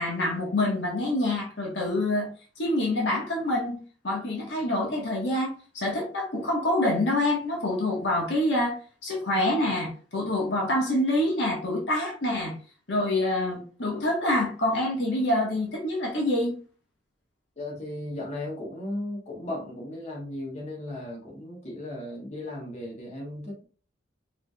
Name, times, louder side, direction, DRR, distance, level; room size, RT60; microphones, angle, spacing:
voice 1, 0.0-2.3 2.6-3.8 4.0-8.7 9.0-12.6 12.9-16.5, left 1 dB, 75° left, -1 dB, 1.4 m, -26 dB
voice 2, 17.6-23.6, left 1 dB, 35° left, -3 dB, 1.3 m, -36 dB
4.8 x 3.3 x 2.3 m, 0.39 s
head